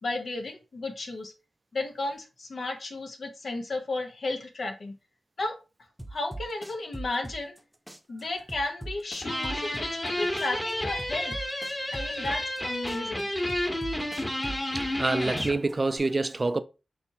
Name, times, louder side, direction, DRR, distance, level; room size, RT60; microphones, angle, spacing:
voice 1, 0.0-1.3 1.7-4.9 5.4-5.5 6.1-7.5 8.1-11.3 11.9-13.3, left 2 dB, 70° left, 0.9 m, -33 dB
sound 1, 6.0-7.6 7.9-10.1 10.4-12.6 12.9-15.1 15.4-16.0, right 2 dB, 5° right, 0.8 m, -40 dB
sound 2, 9.2-15.6, left 1 dB, 25° left, 1.3 m, -31 dB
voice 2, 14.7-16.6, right 3 dB, 40° right, 0.4 m, -27 dB
4.2 x 3.3 x 2.8 m
cardioid pair, 45°, 0 cm